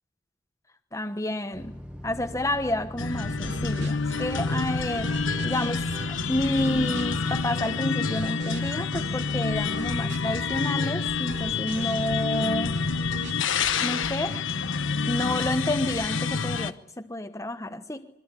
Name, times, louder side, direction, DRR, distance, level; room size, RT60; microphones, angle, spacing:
voice 1, 0.9-1.8 2.0-5.2 5.4-5.9 6.3-12.8 13.8-14.4 15.1-18.1, left 1 dB, 15° left, 7 dB, 1.2 m, -29 dB
sound 1, 1.5-7.3, equal, 5° right, 1.7 m, -41 dB
sound 2, 3.0-16.7, left 5 dB, 80° left, 1.1 m, -28 dB
sound 3, 3.2-14.4, right 2 dB, 65° right, 3.4 m, -41 dB
23.5 x 23.0 x 9.8 m, 0.84 s
head